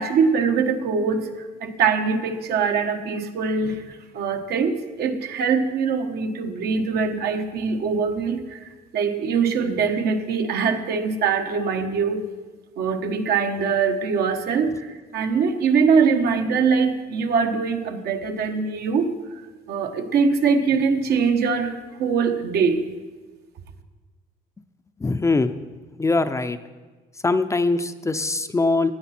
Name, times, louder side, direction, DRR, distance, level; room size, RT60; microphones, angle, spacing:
voice 1, 0.0-12.3 12.8-19.4 19.7-22.8, right 5 dB, 70° right, 5 dB, 1.3 m, -23 dB
voice 2, 25.0-25.5 26.0-26.6 27.2-28.9, left 3 dB, 15° left, 10 dB, 0.5 m, -22 dB
16.5 x 9.8 x 4.3 m, 1.3 s
cardioid pair, 110°, 17 cm